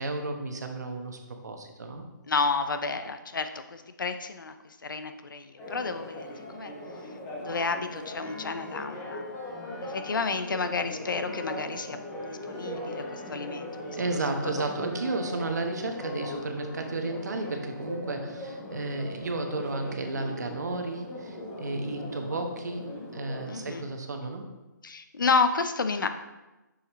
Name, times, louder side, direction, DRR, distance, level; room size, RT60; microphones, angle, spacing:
voice 1, 0.0-2.0 13.9-22.8 23.1-24.5, right 2 dB, 60° right, 4 dB, 1.1 m, -33 dB
voice 2, 2.3-6.3 6.5-6.7 7.4-9.3 9.8-12.0 12.3-13.7 14.6-14.7 23.5-23.9 24.8-26.1, left 4 dB, 85° left, 9 dB, 0.7 m, -30 dB
Church bell, 5.6-23.9, left 1 dB, 10° left, 0.6 m, -39 dB
6.8 x 6.6 x 3.1 m, 1.1 s
hypercardioid pair, 175°, 11 cm